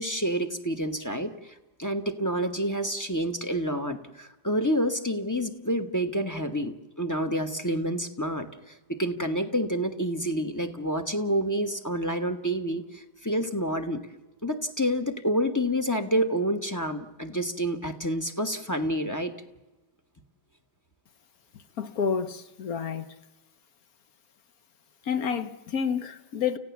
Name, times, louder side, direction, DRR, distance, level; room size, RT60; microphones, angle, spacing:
voice 1, 0.0-14.0 14.4-19.3, equal, 10° left, 1.0 m, -28 dB
voice 2, 21.8-23.1 25.0-26.6, left 6 dB, 60° left, 1.4 m, -29 dB
30.0 x 15.5 x 7.2 m
omnidirectional pair, 1.9 m